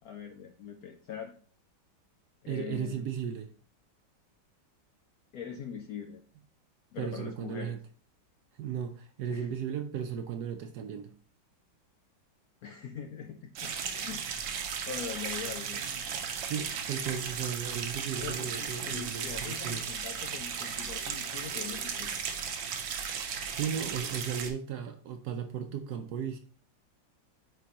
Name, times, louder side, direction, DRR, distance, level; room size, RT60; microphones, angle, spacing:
voice 1, 0.0-1.3 2.4-3.1 5.3-6.2 6.9-7.8 9.3-9.5 12.6-14.2 14.9-15.8 18.2-22.1, left 8 dB, 75° left, 5 dB, 0.8 m, -42 dB
voice 2, 2.5-3.5 7.0-7.8 8.6-11.1 16.4-19.9 23.5-26.4, right 8 dB, 70° right, 7 dB, 1.0 m, -35 dB
sound 1, 13.5-24.5, right 7 dB, 90° right, 1.6 m, -36 dB
9.1 x 3.8 x 2.8 m, 0.43 s
omnidirectional pair, 2.1 m